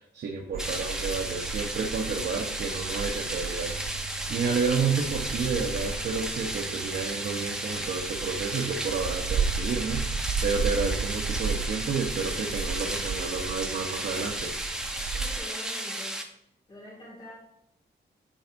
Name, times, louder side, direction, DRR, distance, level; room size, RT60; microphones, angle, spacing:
voice 1, 0.0-14.5, right 5 dB, 75° right, 1 dB, 0.8 m, -31 dB
Frog, 0.5-15.4, right 5 dB, 55° right, 0.4 m, -34 dB
sound 1, 0.6-16.2, right 1 dB, 5° right, 0.7 m, -34 dB
voice 2, 15.1-16.2 16.7-17.3, equal, 30° left, -5 dB, 2.1 m, -45 dB
10.0 x 4.4 x 2.6 m, 0.75 s
wide cardioid pair, 115°, 18 cm